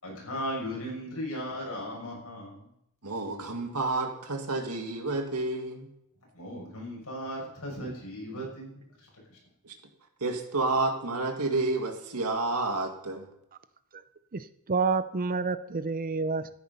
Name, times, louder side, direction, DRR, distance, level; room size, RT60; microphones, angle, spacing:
voice 1, 0.0-2.7 6.3-8.7, equal, 70° left, -2 dB, 6.5 m, -36 dB
voice 2, 3.0-5.9 8.3-8.4 9.6-9.7 10.2-13.3, right 3 dB, 90° right, 4 dB, 2.1 m, -30 dB
voice 3, 14.3-16.5, right 4 dB, 40° right, 13 dB, 0.6 m, -29 dB
13.5 x 10.5 x 5.5 m, 0.78 s
head